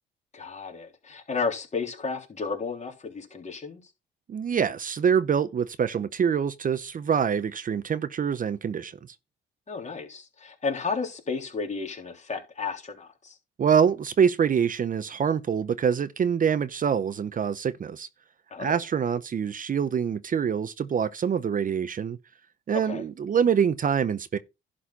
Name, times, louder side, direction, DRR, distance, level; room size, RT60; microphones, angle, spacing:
voice 1, 0.3-3.8 9.7-13.4 18.5-18.8 22.7-23.0, left 4 dB, 35° left, 3.4 m, -33 dB
voice 2, 4.3-8.9 13.6-18.1 18.6-22.2 22.7-24.4, right 7 dB, 45° right, 0.7 m, -25 dB
11.5 x 4.3 x 5.5 m
cardioid pair, 90°, 20 cm